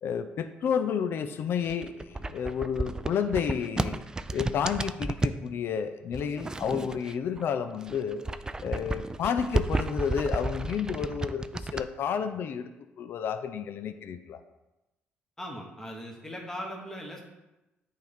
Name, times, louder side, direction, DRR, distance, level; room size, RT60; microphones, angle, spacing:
voice 1, 0.0-4.0 4.3-8.2 8.6-12.7 13.0-14.4, left 7 dB, 60° left, 10 dB, 0.4 m, -31 dB
sound 1, 1.6-5.4 6.1-7.4 7.7-11.8, right 2 dB, 15° right, 0.3 m, -32 dB
voice 2, 15.4-17.2, equal, 10° left, -1 dB, 1.3 m, -39 dB
9.0 x 4.0 x 3.5 m, 0.99 s
cardioid pair, 95°, 4 cm